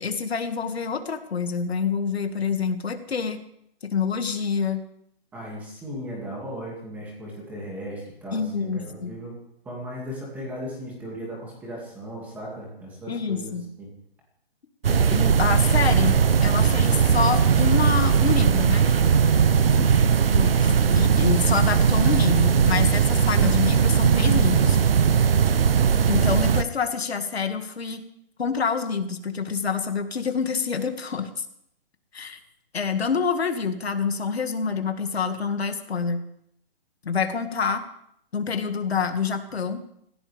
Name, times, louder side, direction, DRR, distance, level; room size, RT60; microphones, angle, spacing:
voice 1, 0.0-3.4 3.8-4.8 8.3-9.1 13.1-13.7 14.9-16.2 16.4-18.9 20.3-24.8 26.1-28.0 28.4-31.4 32.1-32.4 32.7-36.2 37.0-37.8 38.3-39.8, left 5 dB, 80° left, 6 dB, 2.2 m, -27 dB
voice 2, 5.3-9.3 9.6-13.9, equal, 5° right, -3 dB, 2.4 m, -37 dB
sound 1, 14.8-26.6, right 7 dB, 65° right, 0.9 m, -19 dB
24.0 x 16.0 x 3.6 m, 0.73 s
hypercardioid pair, 170°, 31 cm